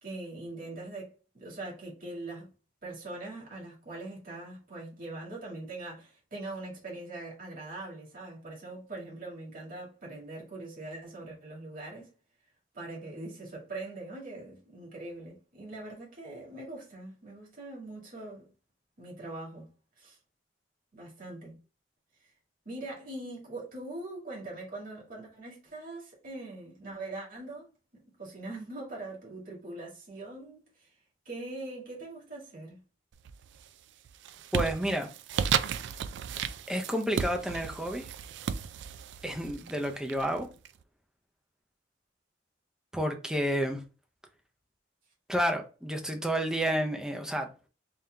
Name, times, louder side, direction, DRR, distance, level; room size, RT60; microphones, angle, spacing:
voice 1, 0.0-2.5 2.8-12.1 12.7-18.4 19.0-19.7 20.0-20.2 20.9-21.6 22.2-22.3 22.7-27.7 27.9-30.9 31.3-32.8, right 2 dB, 50° right, 1.9 m, -42 dB
sound 1, 33.2-33.7 34.0-40.7, right 7 dB, 70° right, 0.3 m, -34 dB
voice 2, 34.5-35.1 36.7-38.1 39.2-40.5 42.9-43.8 45.3-47.5, equal, 5° right, 0.5 m, -30 dB
3.7 x 2.8 x 3.3 m
head